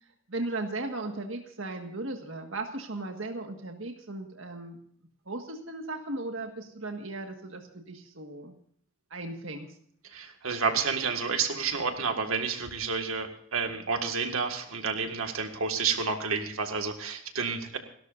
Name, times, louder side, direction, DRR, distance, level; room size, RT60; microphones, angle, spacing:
voice 1, 0.3-4.8 5.3-8.5 9.1-9.7, right 2 dB, 65° right, 3 dB, 1.8 m, -36 dB
voice 2, 10.1-17.8, right 5 dB, 90° right, 5 dB, 1.9 m, -30 dB
29.5 x 13.0 x 2.6 m, 0.63 s
head